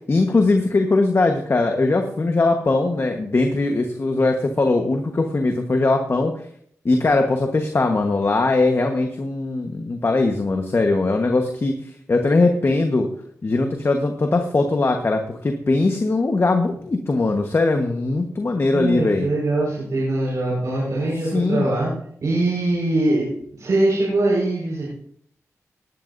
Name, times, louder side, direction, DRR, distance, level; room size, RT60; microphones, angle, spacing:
voice 1, 0.1-6.3 6.8-13.1 13.4-19.3 21.3-21.7, left 3 dB, 45° left, 4 dB, 1.3 m, -20 dB
voice 2, 18.7-21.9 22.2-23.2 23.6-24.9, right 2 dB, 70° right, -5 dB, 5.3 m, -22 dB
18.0 x 11.0 x 2.7 m, 0.64 s
cardioid pair, 60°, 6 cm